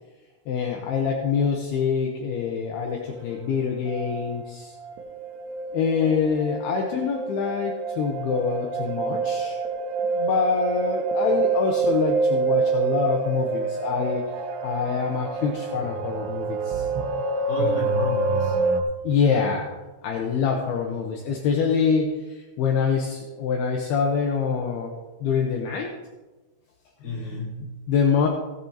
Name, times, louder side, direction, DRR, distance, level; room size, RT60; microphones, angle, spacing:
voice 1, 0.5-4.7 5.7-9.6 10.1-14.2 14.6-16.9 19.0-19.7 20.0-26.0 27.1-27.2 27.9-28.3, left 6 dB, 75° left, 0 dB, 2.5 m, -25 dB
sound 1, 3.3-3.4 3.9-4.5 4.8-18.8, right 4 dB, 75° right, 2.6 m, -27 dB
voice 2, 17.5-18.8 27.0-27.7, left 1 dB, 20° left, -6 dB, 4.5 m, -33 dB
17.0 x 10.0 x 2.9 m, 1.2 s
omnidirectional pair, 5.7 m